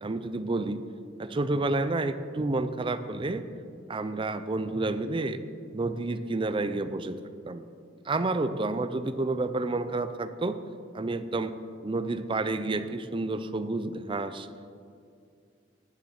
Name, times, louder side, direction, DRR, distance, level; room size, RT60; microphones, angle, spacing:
voice 1, 0.0-0.8 1.2-3.4 3.9-5.4 5.7-7.7 8.1-10.6 10.9-11.6 11.8-14.5, right 2 dB, 25° right, 11 dB, 0.5 m, -30 dB
10.0 x 7.3 x 8.0 m, 2.3 s
head